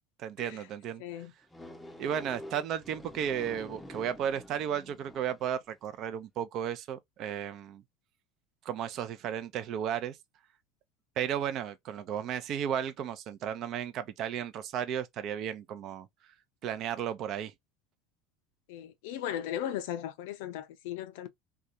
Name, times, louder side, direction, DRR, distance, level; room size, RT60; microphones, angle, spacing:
voice 1, 0.2-1.0 2.0-7.8 8.6-10.2 11.2-16.1 16.6-17.5, right 9 dB, 50° right, 0.5 m, -34 dB
voice 2, 1.0-1.3 18.7-21.3, left 11 dB, 70° left, 0.5 m, -37 dB
sound 1, 1.5-5.6, left 1 dB, 10° left, 0.6 m, -47 dB
2.3 x 2.2 x 2.8 m
hypercardioid pair, 80°, 0 cm